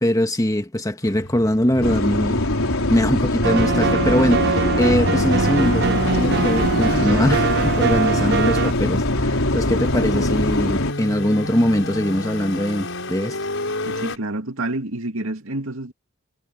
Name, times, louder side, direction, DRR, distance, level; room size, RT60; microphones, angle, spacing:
voice 1, 0.0-2.4 2.9-13.4, equal, 15° left, 1.5 m, -22 dB
sound 1, 1.0-14.2, left 1 dB, 65° left, 7.1 m, -29 dB
sound 2, 1.8-10.9, left 2 dB, 90° left, 4.3 m, -23 dB
sound 3, 3.4-8.7, right 5 dB, 55° right, 0.7 m, -23 dB
voice 2, 13.9-15.9, right 2 dB, 80° right, 2.3 m, -28 dB
head